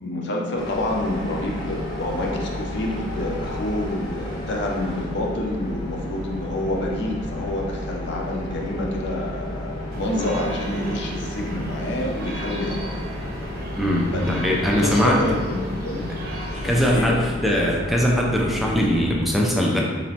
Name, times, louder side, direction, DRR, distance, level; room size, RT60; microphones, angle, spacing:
voice 1, 0.0-12.9 14.1-14.4 14.8-16.1 16.6-17.2, left 1 dB, 65° left, 0 dB, 0.6 m, -28 dB
sound 1, 0.6-19.1, left 1 dB, 25° left, 0.8 m, -32 dB
sound 2, 9.9-16.9, equal, 55° right, 0.7 m, -35 dB
voice 2, 13.8-15.2 16.5-19.8, equal, ahead, -2 dB, 0.4 m, -21 dB
4.2 x 2.9 x 2.8 m, 1.4 s
head